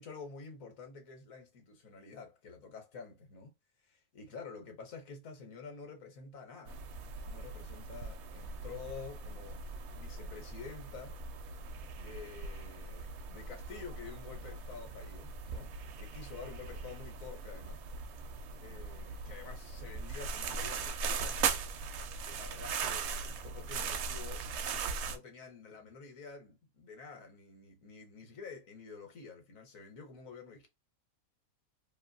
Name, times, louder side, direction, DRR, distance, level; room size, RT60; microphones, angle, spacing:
voice 1, 0.0-3.5 3.8-6.8 7.2-9.7 9.9-11.2 12.0-17.8 18.6-21.7 22.2-24.5 25.1-30.7, left 5 dB, 65° left, 1.3 m, -49 dB
sound 1, 6.7-25.2, right 5 dB, 65° right, 0.7 m, -39 dB
2.9 x 2.5 x 2.5 m
omnidirectional pair, 1.6 m